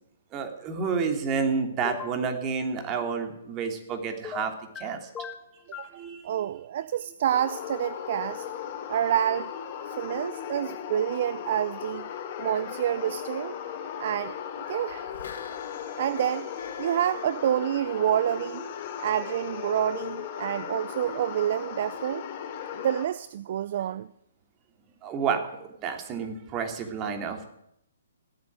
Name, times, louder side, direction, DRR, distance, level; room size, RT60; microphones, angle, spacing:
voice 1, 0.3-5.1 5.7-6.5 25.0-25.4 25.8-27.4, right 5 dB, 25° right, 5 dB, 3.1 m, -30 dB
sound 1, 1.8-2.2 4.2-4.8 5.2-5.9, left 7 dB, 15° left, 1.4 m, -38 dB
voice 2, 5.7-8.5 8.9-9.5 9.9-12.1 12.4-13.5 14.0-14.3 14.7-15.1 16.0-16.5 16.8-18.6 19.0-22.2 22.7-24.1, right 10 dB, 50° right, 17 dB, 0.5 m, -28 dB
sound 2, 7.3-23.1, left 8 dB, 40° left, 3.4 m, -37 dB
sound 3, 14.9-18.4 18.7-18.8, left 6 dB, 65° left, 4.4 m, -47 dB
16.5 x 8.8 x 8.9 m, 0.78 s
figure-of-eight pair, 130°, 0 cm